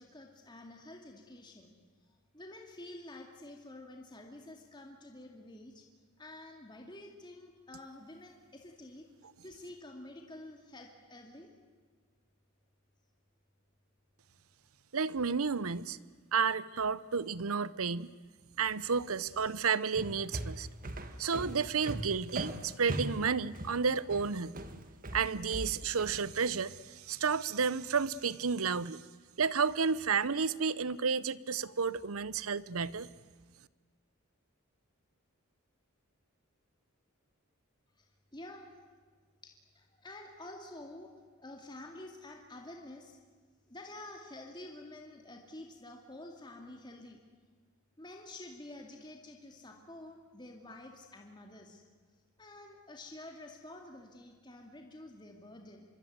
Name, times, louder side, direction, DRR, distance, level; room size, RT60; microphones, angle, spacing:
voice 1, 0.0-1.7 2.3-5.9 6.2-9.1 9.4-11.5 37.9-38.7 39.4-41.1 41.4-43.2 43.7-47.2 48.0-51.8 52.4-55.9, left 1 dB, 20° left, 2 dB, 2.3 m, -49 dB
voice 2, 14.9-16.0 16.3-18.1 18.6-20.7 21.2-24.6 25.1-29.0 29.4-33.1, right 5 dB, 75° right, 18 dB, 0.8 m, -31 dB
sound 1, 20.0-26.2, right 1 dB, 40° right, 1.7 m, -39 dB
25.5 x 23.0 x 9.4 m, 1.5 s
head